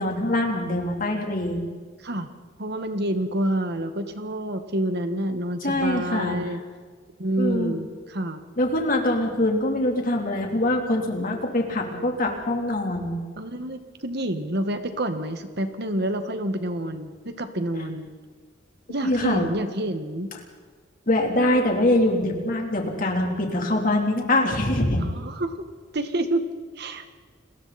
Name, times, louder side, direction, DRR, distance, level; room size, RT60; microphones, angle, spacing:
voice 1, 0.0-1.6 5.6-6.6 7.4-7.8 8.6-13.2 19.0-19.5 21.1-25.0, left 1 dB, 45° left, 1 dB, 3.6 m, -23 dB
voice 2, 2.6-6.6 7.2-8.4 13.4-18.1 18.9-20.3 21.4-21.7 25.0-25.6 25.9-26.5 26.8-27.1, right 1 dB, 60° right, 8 dB, 1.8 m, -28 dB
30.0 x 21.5 x 4.4 m, 1.5 s
head